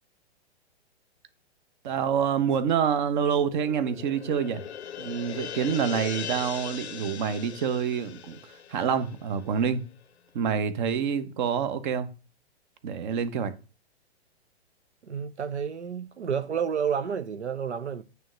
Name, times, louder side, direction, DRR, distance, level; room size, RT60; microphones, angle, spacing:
voice 1, 1.8-4.6 5.0-8.4 8.7-9.9 10.3-12.1 12.8-13.5, right 7 dB, 45° right, 1.0 m, -27 dB
sound 1, 3.3-9.8, left 8 dB, 75° left, 0.6 m, -40 dB
voice 2, 15.0-18.0, right 7 dB, 85° right, 0.6 m, -30 dB
9.1 x 3.4 x 6.3 m
figure-of-eight pair, 115°, 33 cm